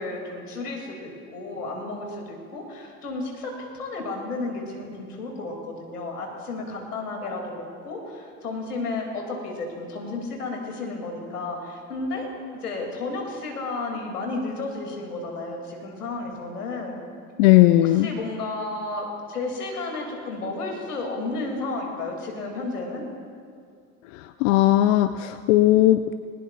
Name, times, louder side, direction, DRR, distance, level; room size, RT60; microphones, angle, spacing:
voice 1, 0.0-12.3 12.6-17.0 17.8-23.0, left 3 dB, 80° left, 1 dB, 2.8 m, -32 dB
voice 2, 17.4-18.1 24.4-26.0, left 15 dB, 60° left, 12 dB, 0.6 m, -17 dB
20.0 x 19.5 x 2.5 m, 2.2 s
figure-of-eight pair, 70°, 45 cm